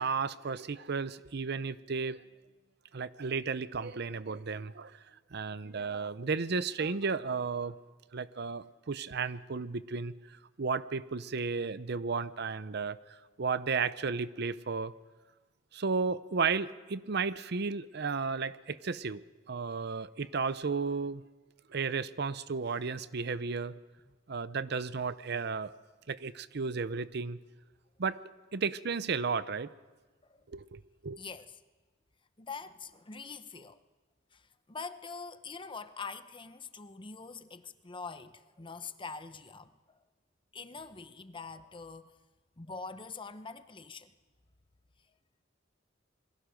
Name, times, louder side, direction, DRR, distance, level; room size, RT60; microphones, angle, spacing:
voice 1, 0.0-2.2 2.9-4.9 5.3-7.7 8.1-14.9 15.7-21.2 21.7-23.7 24.3-25.7 26.1-27.4 28.0-28.2 28.5-29.7 30.5-31.2, right 5 dB, 60° right, 0.7 m, -33 dB
voice 2, 31.2-31.6 32.4-33.8 34.3-40.0 40.5-42.1 42.6-44.1, left 4 dB, 25° left, 0.9 m, -44 dB
28.0 x 22.5 x 5.2 m
head